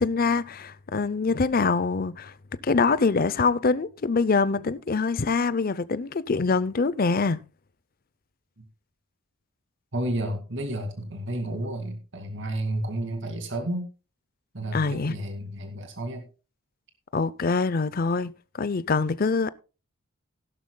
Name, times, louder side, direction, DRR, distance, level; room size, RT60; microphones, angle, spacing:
voice 1, 0.0-2.3 2.6-7.4 14.7-15.2 17.1-19.5, left 4 dB, 40° left, 0.5 m, -24 dB
voice 2, 9.9-13.9 14.5-16.2, right 1 dB, 55° right, 2.3 m, -31 dB
16.5 x 11.5 x 2.2 m
head